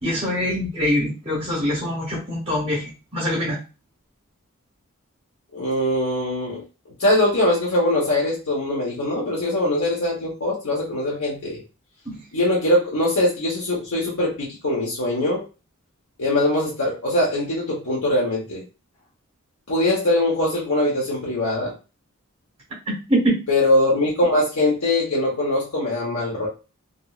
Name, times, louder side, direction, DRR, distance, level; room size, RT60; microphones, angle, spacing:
voice 1, 0.0-3.6 12.0-12.2 22.9-23.4, equal, 25° right, -5 dB, 1.3 m, -24 dB
voice 2, 5.5-6.6 7.0-11.6 12.3-15.4 16.2-18.6 19.7-21.7 23.5-26.5, left 1 dB, 85° left, -5 dB, 1.0 m, -22 dB
2.9 x 2.7 x 2.3 m, 0.31 s
head